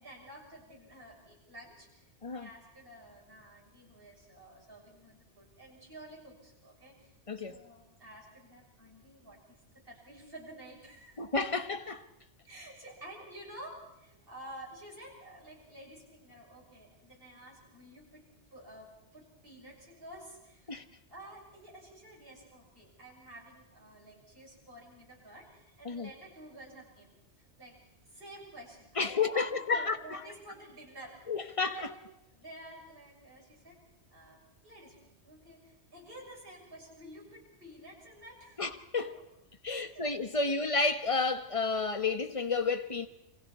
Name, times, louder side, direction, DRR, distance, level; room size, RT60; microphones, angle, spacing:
voice 1, 0.0-11.2 12.5-18.2 18.5-20.7 21.1-27.8 28.1-32.0 32.3-33.8 34.1-34.4 34.6-38.6 39.6-40.6, right 1 dB, 50° right, 7.1 m, -51 dB
voice 2, 7.3-7.6 11.2-12.0 20.7-20.8 25.8-26.1 29.0-30.0 31.3-31.8 38.6-39.2 39.6-43.1, left 4 dB, 30° left, 1.2 m, -31 dB
29.0 x 24.0 x 4.4 m
omnidirectional pair, 1.2 m